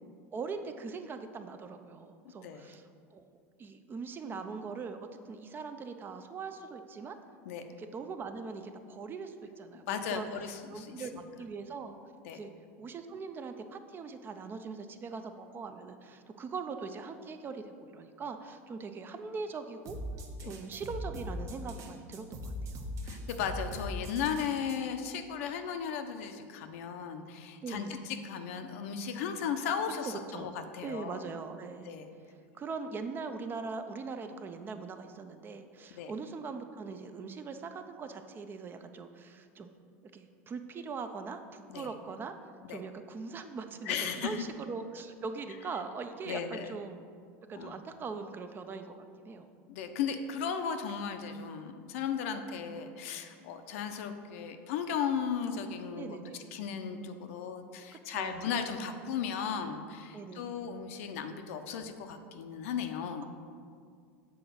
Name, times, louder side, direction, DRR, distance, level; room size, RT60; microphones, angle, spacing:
voice 1, 0.3-3.3 3.6-5.0 5.2-7.2 7.8-10.3 10.7-12.0 12.3-12.5 12.8-20.0 20.4-22.8 27.6-28.0 30.1-30.6 30.8-31.9 32.5-39.7 40.1-42.3 42.7-47.1 47.5-49.5 56.0-56.5 57.9-58.5 60.1-60.6, right 4 dB, 30° right, 8 dB, 0.5 m, -41 dB
voice 2, 9.9-11.2 12.2-12.4 20.4-20.5 23.0-31.2 31.9-32.1 35.9-36.1 41.7-41.9 42.6-42.8 43.9-44.4 46.3-46.7 47.5-47.8 49.7-56.1 56.5-63.2, left 7 dB, 75° left, 7 dB, 0.6 m, -36 dB
sound 1, 19.9-24.8, equal, 45° right, 1.0 m, -40 dB
7.0 x 3.8 x 6.3 m, 2.2 s
supercardioid pair, 110°, 7 cm